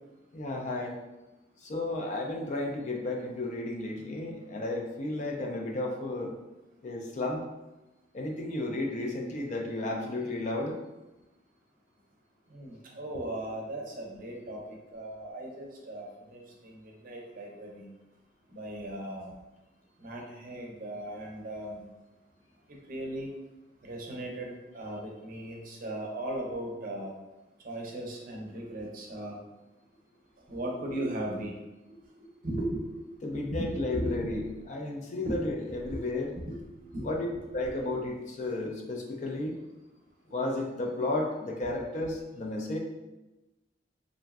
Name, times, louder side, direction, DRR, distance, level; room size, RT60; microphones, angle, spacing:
voice 1, 0.3-1.0 1.6-6.3 6.8-7.4 8.1-10.8 33.2-36.3 37.0-39.5 40.3-42.8, left 2 dB, 40° left, 1 dB, 0.3 m, -33 dB
voice 2, 12.5-16.7 17.0-17.9 18.5-19.3 20.0-21.8 22.9-23.3 23.8-27.1 27.6-29.4 30.5-31.5 32.4-32.8 33.5-34.5 35.3-35.4 35.7-36.0 36.4-36.6 36.9-37.1, right 1 dB, 50° right, -1 dB, 0.6 m, -37 dB
3.0 x 2.5 x 2.3 m, 1.0 s
head